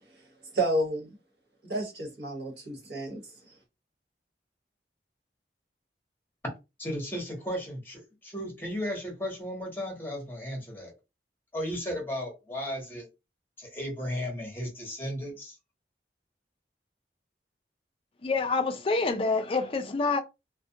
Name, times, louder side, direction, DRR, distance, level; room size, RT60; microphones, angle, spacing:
voice 1, 0.5-1.1 1.6-3.2, right 1 dB, 70° right, 1.1 m, -30 dB
voice 2, 6.8-10.9 11.5-13.1 13.6-15.6, equal, 10° left, 0.9 m, -35 dB
voice 3, 18.2-20.2, left 3 dB, 30° left, 0.3 m, -27 dB
2.4 x 2.1 x 2.7 m
head